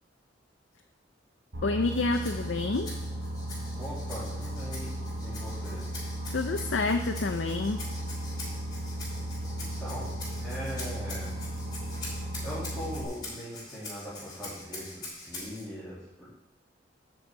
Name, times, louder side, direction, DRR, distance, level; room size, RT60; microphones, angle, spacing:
Boat Water vehicle, 1.5-13.0, right 1 dB, 65° right, 3.7 m, -36 dB
voice 1, 1.6-2.9 6.3-7.8, left 3 dB, 75° left, 4 dB, 0.5 m, -28 dB
Rattle (instrument), 1.8-15.7, left 2 dB, 25° left, 3.6 m, -44 dB
voice 2, 3.7-4.9 5.2-5.8 9.6-10.1 10.4-11.3 11.9-12.0 12.4-16.3, equal, ahead, -12 dB, 2.4 m, -40 dB
7.9 x 6.8 x 4.6 m, 0.92 s
head